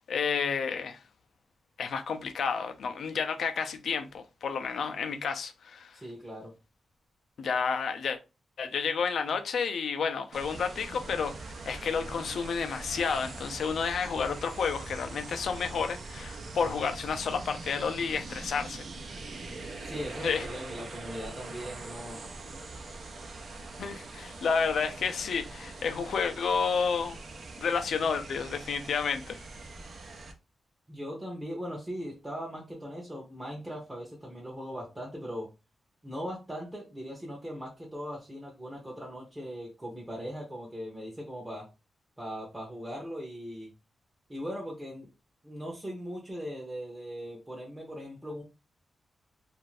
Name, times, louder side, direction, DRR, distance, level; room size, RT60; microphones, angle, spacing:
voice 1, 0.1-1.0 1.8-6.0 7.4-8.2 8.6-18.8 20.2-20.5 23.8-27.2 27.6-29.4, left 5 dB, 75° left, 0.4 m, -30 dB
voice 2, 5.9-6.5 19.8-22.2 30.9-35.5 36.0-41.7 42.2-43.7 44.3-45.1 45.4-48.4, equal, 15° right, 0.8 m, -39 dB
sound 1, 10.3-30.3, right 3 dB, 65° right, 0.7 m, -42 dB
2.5 x 2.5 x 3.2 m
wide cardioid pair, 105°, 0 cm